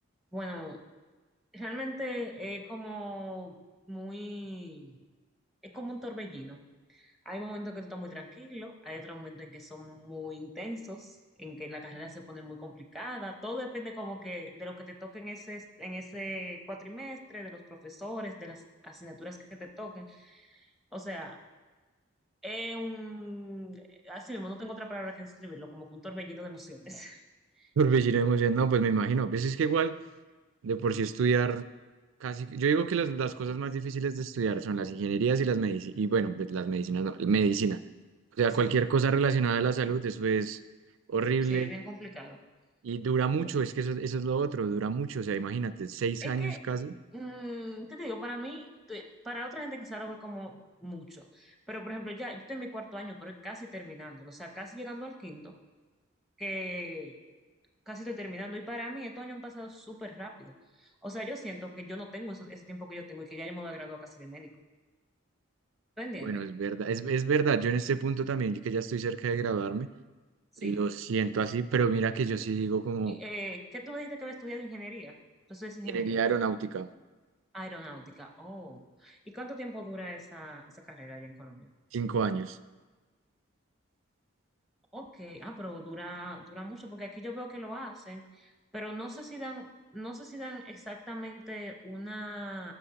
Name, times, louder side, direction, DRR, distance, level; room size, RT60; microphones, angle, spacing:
voice 1, 0.3-0.8 1.5-5.0 5.6-6.6 6.9-21.4 22.4-27.2 27.6-27.7 38.5-38.7 41.5-42.4 46.2-46.6 47.1-55.6 56.4-57.2 57.9-64.5 66.0-66.4 70.5-70.8 73.0-75.1 75.5-76.2 77.5-81.7 84.9-89.7 89.9-92.7, equal, ahead, 2 dB, 0.6 m, -40 dB
voice 2, 27.8-29.9 30.6-31.6 32.2-37.8 38.4-40.6 41.1-41.7 42.8-46.9 66.2-69.9 70.6-73.2 75.9-76.9 81.9-82.6, right 5 dB, 75° right, 14 dB, 0.4 m, -28 dB
14.5 x 6.0 x 2.9 m, 1.3 s
head